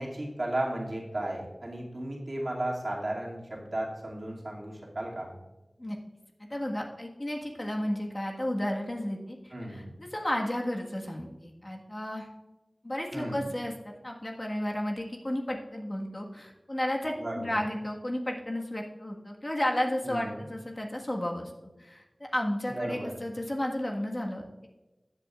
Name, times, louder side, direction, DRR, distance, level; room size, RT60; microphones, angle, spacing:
voice 1, 0.0-5.3 9.5-9.9 13.1-13.5 17.2-17.6 20.0-20.4 22.7-23.2, right 1 dB, 60° right, -3 dB, 2.4 m, -34 dB
voice 2, 6.5-12.3 12.8-21.5 21.8-24.7, left 1 dB, 35° left, 0 dB, 1.5 m, -33 dB
14.5 x 8.2 x 2.4 m, 1.1 s
wide cardioid pair, 40°, 0 cm